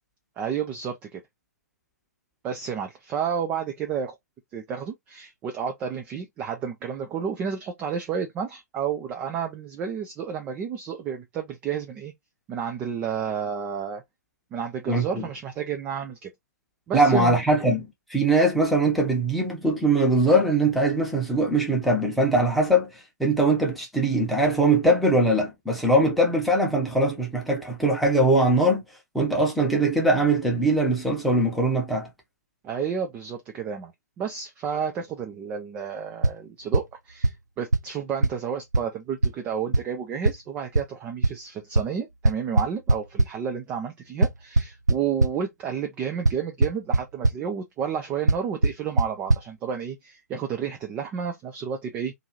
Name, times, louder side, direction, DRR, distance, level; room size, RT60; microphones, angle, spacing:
voice 1, 0.4-1.2 2.4-4.2 4.5-12.1 12.5-14.0 14.5-16.3 16.9-17.4 32.6-33.9 34.2-52.1, right 7 dB, 15° right, 0.4 m, -31 dB
voice 2, 14.9-15.2 16.9-28.8 29.1-32.1, right 1 dB, ahead, 0.7 m, -21 dB
sound 1, 36.2-36.3 36.7-36.8 37.2-37.3 37.7-37.8 38.2-38.3 38.7-38.8 39.2-39.3 39.7-39.8 40.2-40.3 40.7-40.8 41.2-41.3 41.7-41.8 42.2-43.2 44.2-45.3 46.2-46.3 46.6-47.0 47.2-47.3 48.3-48.4 48.6-48.7 49.0-49.1 49.3-49.4, right 2 dB, 85° right, 0.4 m, -18 dB
2.7 x 2.5 x 2.8 m
figure-of-eight pair, 125°, 9 cm